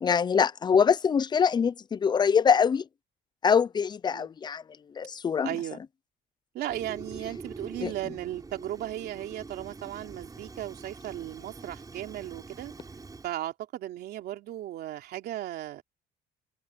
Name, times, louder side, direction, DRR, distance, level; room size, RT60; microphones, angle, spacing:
voice 1, 0.0-2.8 3.4-4.6 5.0-5.5 7.8-7.9, left 6 dB, 25° left, 0.4 m, -24 dB
voice 2, 5.4-5.8 6.5-12.7 13.2-15.8, right 13 dB, 75° right, 3.1 m, -36 dB
Fire, 6.7-13.3, right 3 dB, 20° right, 6.1 m, -44 dB
cardioid pair, 110°, 17 cm